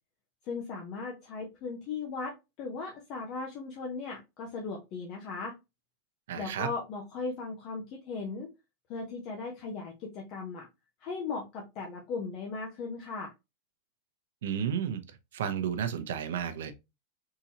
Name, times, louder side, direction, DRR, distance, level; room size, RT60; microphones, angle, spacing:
voice 1, 0.4-5.6 6.4-8.5 8.9-10.7 11.0-13.3, left 4 dB, 30° left, 0.6 m, -37 dB
voice 2, 6.3-6.7 14.4-15.0 15.3-16.7, right 8 dB, 80° right, 0.7 m, -32 dB
3.7 x 2.8 x 2.8 m
supercardioid pair, 175°, 0 cm